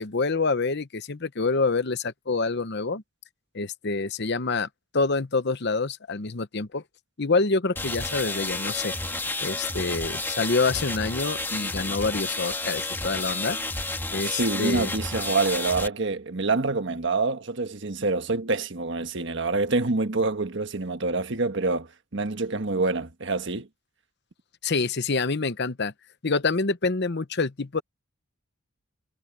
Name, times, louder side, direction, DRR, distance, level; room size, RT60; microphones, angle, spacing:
voice 1, 0.0-3.0 3.5-4.7 4.9-6.8 7.2-8.9 9.4-13.6 14.1-14.9 24.6-25.9 26.2-27.8, left 3 dB, 55° left, 0.9 m, -26 dB
sound 1, 7.8-15.9, left 2 dB, 10° left, 1.7 m, -31 dB
voice 2, 14.3-23.7, right 3 dB, 60° right, 1.4 m, -26 dB
head